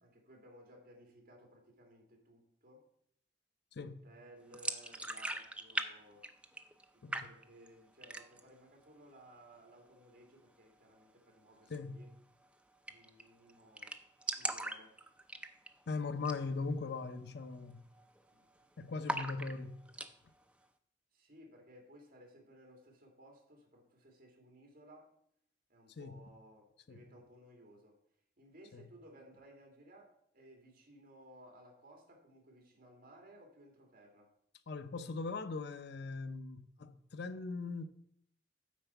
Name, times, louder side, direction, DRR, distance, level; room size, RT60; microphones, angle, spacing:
voice 1, 0.0-2.8 3.8-6.3 6.9-12.1 12.9-14.0 14.3-14.9 18.3-18.4 21.1-25.1 25.7-28.0 28.4-34.3, right 1 dB, 50° right, 2.5 m, -59 dB
voice 2, 3.7-4.1 7.0-7.3 11.7-12.1 15.9-17.8 18.8-19.8 25.9-26.2 26.9-27.0 28.7-28.8 34.7-37.8, left 4 dB, 65° left, 0.6 m, -40 dB
sound 1, 4.5-5.9 6.1-6.8 7.1-7.7 8.0-8.5 8.9-9.0 9.3-9.9 11.6-11.8 12.1-12.2 12.4-12.5 12.9-13.2 13.5-13.6 13.8-15.8 16.2-16.4 16.8-16.9 17.4-17.7 18.0-18.6 19.0-20.1, right 2 dB, 5° right, 0.5 m, -40 dB
9.3 x 4.4 x 7.0 m
head